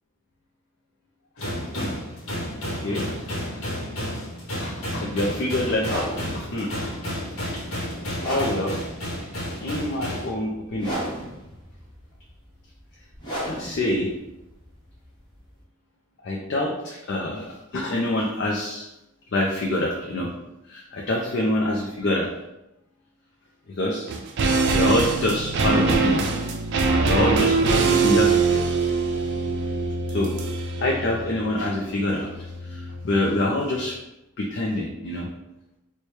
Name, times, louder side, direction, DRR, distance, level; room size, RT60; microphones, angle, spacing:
sound 1, 1.4-10.3, equal, 80° left, 1.0 m, -31 dB
voice 1, 4.6-6.7 8.2-8.8 9.6-11.0 13.5-14.1 16.2-17.5 17.7-18.9 19.3-20.3 20.7-22.3 23.7-24.1 24.7-26.2 27.0-28.6 30.1-30.3 30.8-32.3 32.7-32.8 33.0-33.9 34.4-35.3, left 1 dB, 55° left, -1 dB, 0.5 m, -25 dB
sound 2, 5.8-15.6, right 1 dB, 20° left, 1.2 m, -35 dB
sound 3, 24.1-33.5 33.7-33.8, right 4 dB, 55° right, 0.4 m, -23 dB
4.3 x 2.2 x 3.1 m, 0.91 s
head